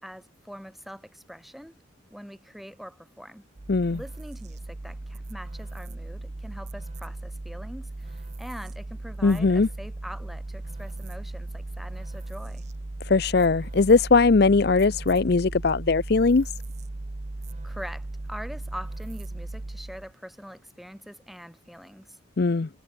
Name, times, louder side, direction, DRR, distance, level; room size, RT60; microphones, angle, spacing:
voice 1, 0.0-1.8 2.1-3.5 3.9-12.7 17.6-22.2, equal, ahead, 1.6 m, -43 dB
sound 1, 3.6-20.1, right 2 dB, 35° right, 0.6 m, -37 dB
voice 2, 3.7-4.0 9.2-9.7 13.1-16.5 22.4-22.7, left 4 dB, 50° left, 0.5 m, -20 dB
head